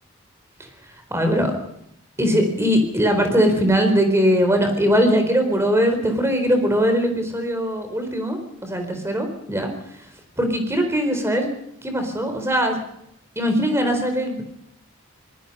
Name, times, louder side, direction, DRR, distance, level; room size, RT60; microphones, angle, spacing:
voice 1, 1.1-1.5 2.2-9.7 10.4-11.5 11.8-12.8 13.4-14.4, equal, 15° right, 6 dB, 4.0 m, -20 dB
25.5 x 20.0 x 5.4 m, 0.76 s
head